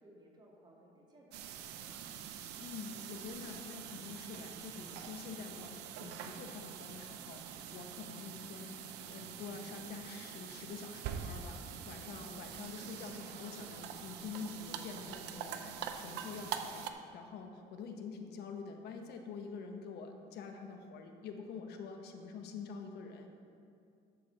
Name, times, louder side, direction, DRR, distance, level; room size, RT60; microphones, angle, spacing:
voice 1, 0.0-1.9 13.2-13.4, right 1 dB, 25° right, -2 dB, 2.1 m, -61 dB
sound 1, 1.3-16.9, right 8 dB, 90° right, 0.7 m, -45 dB
voice 2, 2.6-23.3, left 5 dB, 75° left, 4 dB, 1.1 m, -46 dB
12.0 x 4.4 x 6.5 m, 2.4 s
cardioid pair, 110°, 17 cm